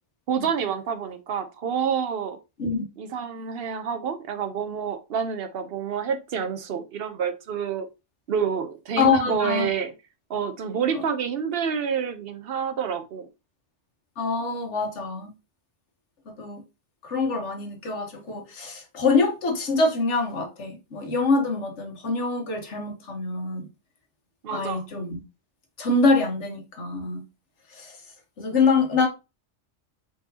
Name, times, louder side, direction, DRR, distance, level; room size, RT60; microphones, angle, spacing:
voice 1, 0.3-2.4 3.0-7.9 8.3-9.9 10.3-13.3 24.4-24.8, right 7 dB, 60° right, 0.8 m, -28 dB
voice 2, 9.0-9.7 10.9-11.0 14.2-15.3 16.3-16.6 17.0-23.7 24.5-25.2 25.8-27.2 27.7-28.0 28.4-29.1, left 4 dB, 75° left, 1.5 m, -25 dB
4.6 x 4.0 x 2.8 m
omnidirectional pair, 1.2 m